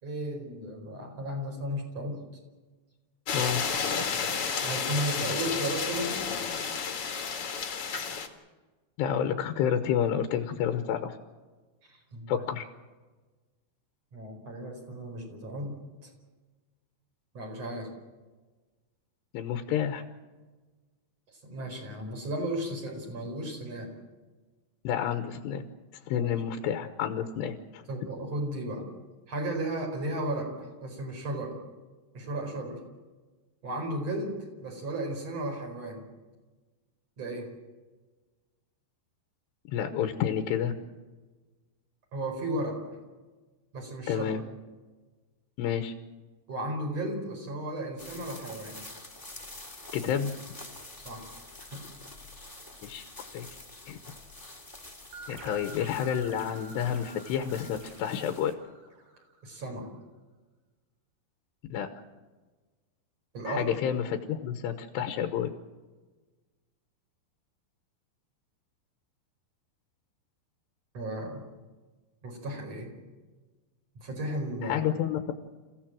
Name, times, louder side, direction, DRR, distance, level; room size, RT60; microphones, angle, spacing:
voice 1, 0.0-2.2 4.6-6.2 11.8-12.5 14.1-16.1 17.3-17.9 21.3-23.9 26.2-26.3 27.9-28.9 29.3-31.6 32.1-32.8 33.6-36.0 37.2-37.5 42.1-42.8 43.7-44.3 46.5-48.8 51.0-51.3 51.7-51.8 59.4-59.9 63.3-63.7 70.9-71.4 72.2-72.9 74.0-74.8, right 1 dB, 40° right, 2 dB, 5.6 m, -34 dB
sound 1, 3.3-8.3, left 6 dB, 45° left, 1.9 m, -31 dB
voice 2, 9.0-11.2 12.3-12.6 19.3-20.0 24.8-25.6 26.1-27.8 39.7-40.7 44.1-44.4 45.6-45.9 49.9-50.3 52.8-53.0 53.3-53.5 53.9-54.0 55.3-58.5 61.7-61.9 63.5-65.5 74.6-75.3, left 9 dB, 85° left, 7 dB, 3.2 m, -29 dB
sound 2, 48.0-58.5, left 2 dB, 10° left, 1.2 m, -47 dB
sound 3, 55.1-59.5, right 2 dB, 75° right, 5.9 m, -49 dB
28.5 x 15.5 x 7.6 m, 1.3 s
omnidirectional pair, 4.8 m